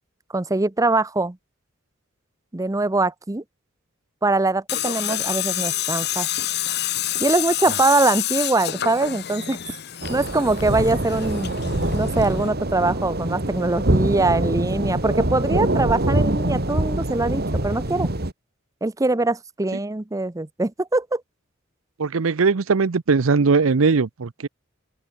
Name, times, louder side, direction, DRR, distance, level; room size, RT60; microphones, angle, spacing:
voice 1, 0.3-1.4 2.5-3.4 4.2-6.3 7.2-9.6 10.1-11.5 11.9-18.1 18.8-21.2, right 2 dB, 15° right, 0.7 m, -22 dB
Tools, 4.7-12.5, left 12 dB, 55° left, 1.3 m, -28 dB
sound 1, 10.0-18.3, right 1 dB, 50° right, 2.6 m, -24 dB
voice 2, 22.0-24.5, right 4 dB, 90° right, 0.7 m, -19 dB
head